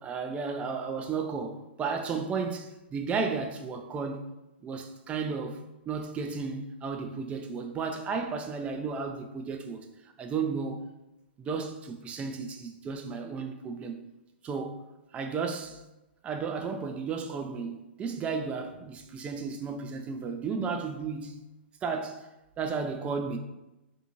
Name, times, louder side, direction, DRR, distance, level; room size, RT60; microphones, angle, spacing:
voice 1, 0.0-4.2 4.6-5.6 5.9-9.9 10.2-10.8 11.4-14.0 14.4-14.8 15.1-15.8 16.2-21.3 21.8-22.2 22.6-23.4, right 5 dB, 20° right, 0.3 m, -33 dB
2.6 x 2.5 x 2.8 m
hypercardioid pair, 120°, 6 cm